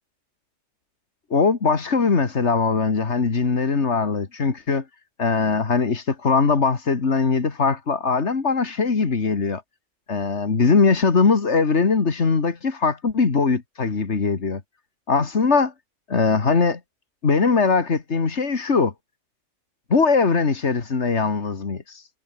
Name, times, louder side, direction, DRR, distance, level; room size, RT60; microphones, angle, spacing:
voice 1, 1.3-4.8 5.2-9.6 10.1-14.6 15.1-15.7 16.1-16.8 17.2-18.9 19.9-22.1, left 4 dB, 65° left, 2.3 m, -21 dB
omnidirectional pair, 1.2 m